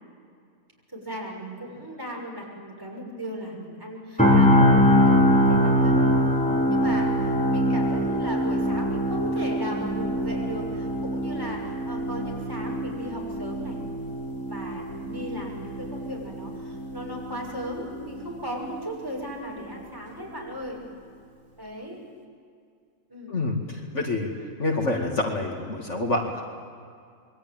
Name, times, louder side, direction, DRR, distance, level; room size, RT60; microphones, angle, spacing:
voice 1, 0.9-6.1 6.7-11.6 11.9-13.8 14.4-20.8 21.6-22.0 23.1-23.3, equal, 15° right, -2 dB, 6.6 m, -36 dB
sound 1, 4.2-18.2 18.5-18.7, equal, 5° left, 3.7 m, -23 dB
voice 2, 23.3-24.3 24.6-26.4, left 2 dB, 55° left, 1 dB, 2.5 m, -27 dB
27.5 x 22.5 x 9.1 m, 2.3 s
omnidirectional pair, 1.5 m